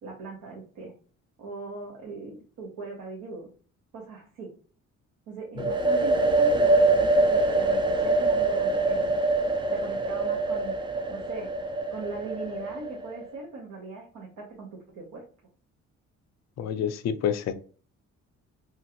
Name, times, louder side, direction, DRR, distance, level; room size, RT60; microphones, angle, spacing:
voice 1, 0.0-0.9 1.4-3.5 3.9-4.5 5.3-9.1 9.7-10.8 11.1-11.5 11.9-15.2, right 4 dB, 80° right, -2 dB, 1.0 m, -40 dB
sound 1, 5.6-13.2, right 2 dB, 15° right, 0.3 m, -24 dB
voice 2, 16.6-17.5, left 8 dB, 60° left, 10 dB, 0.5 m, -28 dB
3.0 x 2.4 x 2.9 m, 0.41 s
cardioid pair, 90°, 30 cm